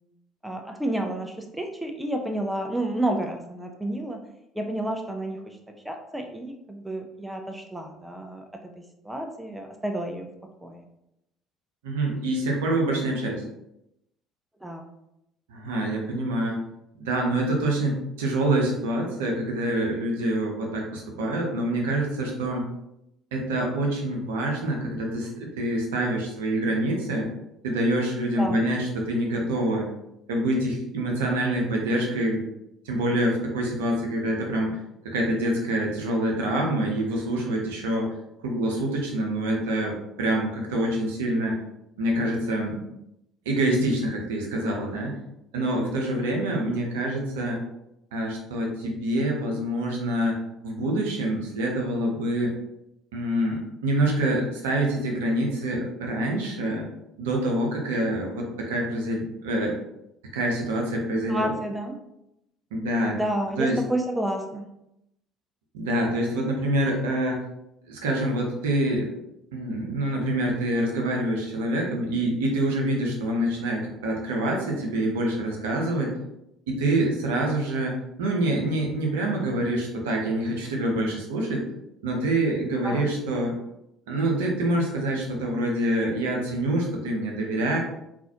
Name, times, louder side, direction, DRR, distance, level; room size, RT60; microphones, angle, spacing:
voice 1, 0.4-4.2 4.5-5.6 5.8-8.5 8.8-10.3 10.6-10.8 14.6-14.9 28.4-28.6 61.3-62.0 63.1-64.7 82.8-83.1, right 1 dB, 5° right, 3 dB, 0.5 m, -30 dB
voice 2, 11.8-13.4 15.5-16.6 16.9-22.7 23.3-27.3 27.6-29.9 30.3-32.5 32.8-34.8 35.0-38.1 38.4-41.6 42.0-42.8 43.5-45.1 45.5-47.6 48.1-50.4 50.6-52.5 53.1-56.9 57.2-59.8 60.3-61.5 62.7-63.2 63.6-63.8 65.7-67.4 67.9-69.1 69.5-76.1 76.7-81.6 82.0-83.5 84.1-87.8, right 1 dB, 70° right, 0 dB, 0.7 m, -26 dB
3.9 x 2.5 x 2.8 m, 0.85 s
figure-of-eight pair, 55°, 0 cm